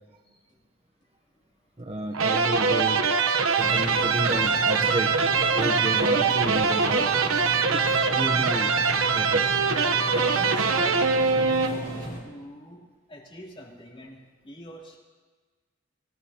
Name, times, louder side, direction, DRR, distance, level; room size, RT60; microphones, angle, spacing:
voice 1, 0.2-0.6 1.8-2.3 4.5-4.8 10.3-12.8 13.1-14.2 14.4-15.0, left 1 dB, 25° left, -3 dB, 3.1 m, -45 dB
voice 2, 1.8-3.0 3.6-7.1 7.7-8.8 9.1-9.6, right 1 dB, 30° right, 2 dB, 0.9 m, -31 dB
sound 1, 2.1-12.1, right 5 dB, 85° right, 1.0 m, -23 dB
sound 2, 3.6-12.2, left 1 dB, 45° left, 4.3 m, -36 dB
26.5 x 15.5 x 2.9 m, 1.4 s
head